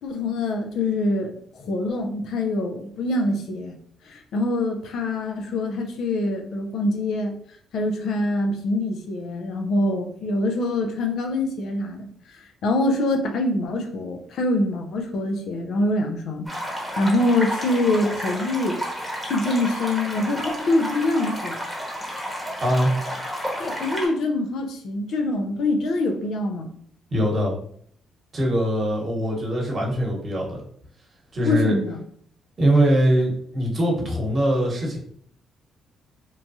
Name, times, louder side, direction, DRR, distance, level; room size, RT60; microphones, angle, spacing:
voice 1, 0.0-3.8 4.1-7.4 7.7-12.1 12.6-16.5 17.0-18.8 19.3-21.6 23.6-26.7 31.4-32.0, left 2 dB, 75° left, 4 dB, 0.5 m, -24 dB
sound 1, 16.5-24.1, equal, 5° left, 1.0 m, -31 dB
voice 2, 22.6-22.9 27.1-27.5 28.3-30.6 31.3-31.7 32.6-35.0, equal, 40° right, -2 dB, 1.0 m, -22 dB
3.0 x 2.2 x 2.7 m, 0.63 s
cardioid pair, 90°, 0 cm